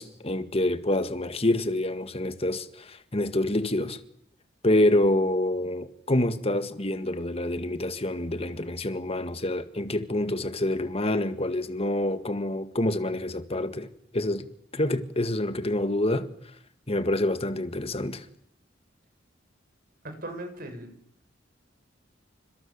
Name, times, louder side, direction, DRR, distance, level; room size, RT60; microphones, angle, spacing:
voice 1, 0.0-4.0 4.6-13.9 14.1-14.5 14.7-16.3 16.9-18.3, left 1 dB, 30° left, 1.9 m, -27 dB
voice 2, 20.0-20.9, right 1 dB, 50° right, 6.8 m, -38 dB
29.5 x 26.5 x 7.3 m
head